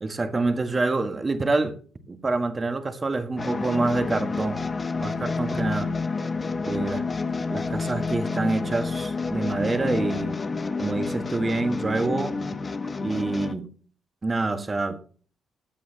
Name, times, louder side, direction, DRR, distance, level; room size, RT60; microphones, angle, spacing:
voice 1, 0.0-1.7 2.1-4.6 5.0-5.9 6.6-7.0 7.5-10.3 10.8-12.6 13.0-13.7 14.2-15.0, right 3 dB, 30° right, 1.6 m, -26 dB
sound 1, 3.4-13.5, left 4 dB, 30° left, 1.1 m, -29 dB
14.5 x 8.5 x 2.9 m
cardioid pair, 90°, 0 cm